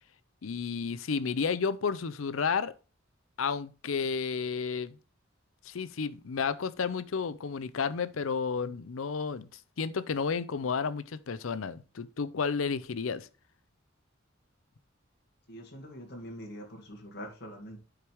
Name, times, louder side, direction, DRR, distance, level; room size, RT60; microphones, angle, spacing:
voice 1, 0.4-2.7 3.4-4.9 5.6-13.3, left 5 dB, 80° left, 0.6 m, -32 dB
voice 2, 15.5-17.8, equal, 55° left, 2.4 m, -44 dB
9.9 x 4.7 x 3.4 m
head